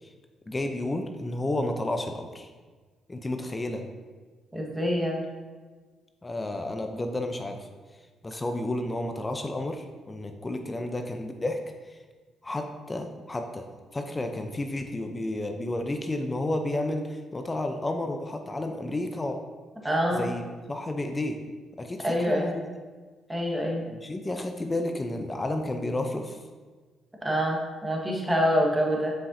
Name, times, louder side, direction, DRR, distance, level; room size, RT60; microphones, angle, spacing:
voice 1, 0.5-2.5 3.1-3.8 6.2-7.7 8.2-11.6 11.8-12.0 12.4-19.4 20.1-21.4 21.8-22.7 23.9-26.4, left 1 dB, 25° left, 5 dB, 0.6 m, -31 dB
voice 2, 4.5-5.2 19.8-20.2 22.0-22.5 23.3-23.8 27.2-29.1, equal, 15° right, -1 dB, 1.5 m, -26 dB
7.6 x 5.5 x 2.7 m, 1.4 s
supercardioid pair, 70°, 0 cm